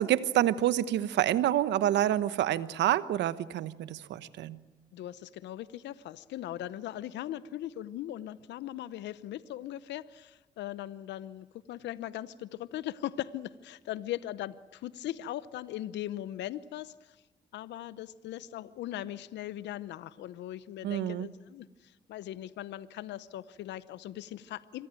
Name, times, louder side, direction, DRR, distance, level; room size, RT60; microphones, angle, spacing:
voice 1, 0.0-4.6 20.8-21.3, right 12 dB, 80° right, 15 dB, 1.1 m, -27 dB
voice 2, 4.9-17.2 17.5-24.9, left 13 dB, 80° left, 16 dB, 0.8 m, -39 dB
26.5 x 23.5 x 9.0 m, 1.2 s
hypercardioid pair, 45°, 18 cm